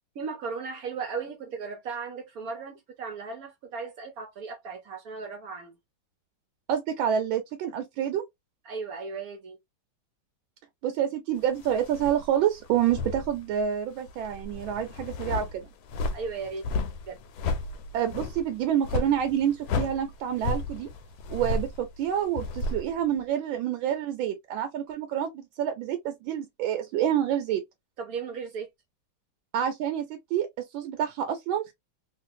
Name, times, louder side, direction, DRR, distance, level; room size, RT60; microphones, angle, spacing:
voice 1, 0.1-5.8 8.7-9.6 16.1-16.7 17.1-17.2 28.0-28.7, right 5 dB, 65° right, 0.9 m, -36 dB
voice 2, 6.7-8.2 10.8-15.7 17.9-20.9 21.3-27.6 29.5-31.7, right 10 dB, 80° right, 1.3 m, -28 dB
sound 1, 11.6-13.8 14.1-23.2, left 3 dB, 90° left, 1.4 m, -33 dB
3.2 x 2.4 x 2.6 m
omnidirectional pair, 2.2 m